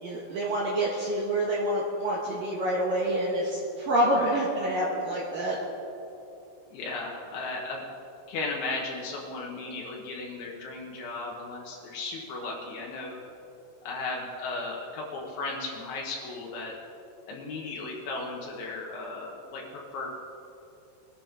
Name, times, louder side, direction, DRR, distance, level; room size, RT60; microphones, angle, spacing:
voice 1, 0.0-5.6, right 1 dB, 60° right, -5 dB, 2.7 m, -27 dB
voice 2, 4.1-4.4 6.7-7.8 8.3-13.2 13.9-16.8 17.3-20.1, left 3 dB, 75° left, -2 dB, 3.5 m, -35 dB
22.5 x 13.0 x 3.7 m, 2.9 s
omnidirectional pair, 5.4 m